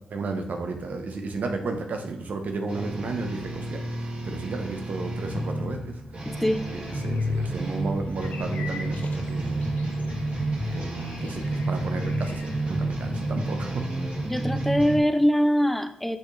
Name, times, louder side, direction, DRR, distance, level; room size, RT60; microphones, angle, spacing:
voice 1, 0.1-6.0 6.7-9.8 10.7-13.9, right 3 dB, 70° right, 4 dB, 0.9 m, -33 dB
sound 1, 2.7-15.0, right 1 dB, 55° right, 2.6 m, -30 dB
voice 2, 6.2-6.7 14.2-16.2, equal, 5° left, 10 dB, 0.6 m, -23 dB
sound 2, 6.3-14.3, left 3 dB, 85° left, 0.8 m, -43 dB
6.2 x 6.2 x 3.2 m, 0.74 s
cardioid pair, 55°, 3 cm